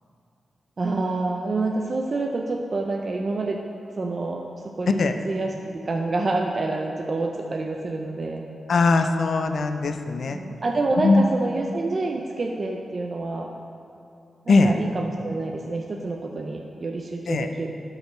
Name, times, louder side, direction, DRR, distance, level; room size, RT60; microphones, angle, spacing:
voice 1, 0.8-3.6 4.0-4.4 4.8-8.4 10.3-13.5 14.5-17.7, right 3 dB, 50° right, 2 dB, 0.5 m, -27 dB
voice 2, 8.7-10.4 11.0-11.2 14.5-14.7 17.3-17.5, left 3 dB, 70° left, 7 dB, 0.5 m, -20 dB
12.0 x 4.9 x 3.1 m, 2.7 s
supercardioid pair, 45°, 0 cm